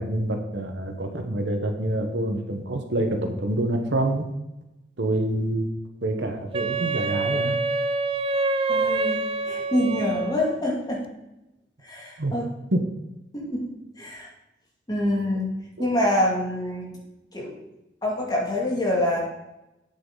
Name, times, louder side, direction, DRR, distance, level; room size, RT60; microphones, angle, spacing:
voice 1, 0.0-4.3 5.0-5.7 6.0-7.5 12.2-12.4 12.7-12.8 15.8-15.9, right 1 dB, 70° right, 5 dB, 1.2 m, -26 dB
Wind instrument woodwind instrument, 6.5-10.6, right 3 dB, 30° right, 0.4 m, -26 dB
voice 2, 8.7-11.0 11.8-12.5 13.3-13.7 14.0-14.3 14.9-15.5 15.8-17.0 17.3-17.6 18.0-19.2, left 1 dB, 20° left, -3 dB, 2.4 m, -26 dB
8.8 x 8.4 x 3.9 m, 0.96 s
head